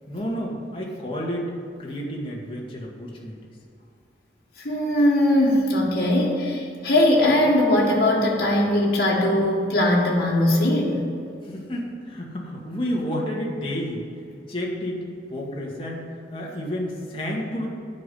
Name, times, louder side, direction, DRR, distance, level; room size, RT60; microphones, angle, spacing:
voice 1, 0.1-1.5 1.8-3.4 11.4-14.0 14.5-15.0 15.3-17.7, equal, 30° left, -3 dB, 2.0 m, -30 dB
voice 2, 4.6-11.0, left 1 dB, 55° left, -4 dB, 2.0 m, -20 dB
9.3 x 5.9 x 8.4 m, 2.4 s
head